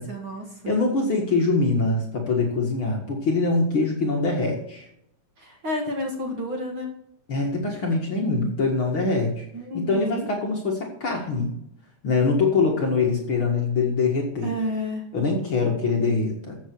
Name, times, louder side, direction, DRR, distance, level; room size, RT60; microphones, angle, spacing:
voice 1, 0.0-0.8 5.4-6.9 9.5-10.3 14.4-15.0, left 1 dB, 40° right, 1 dB, 2.7 m, -31 dB
voice 2, 0.6-4.9 7.3-9.5 9.7-11.5 12.0-14.5 15.1-16.6, left 3 dB, 45° left, 0 dB, 2.2 m, -23 dB
14.0 x 7.7 x 4.7 m, 0.76 s
omnidirectional pair, 3.8 m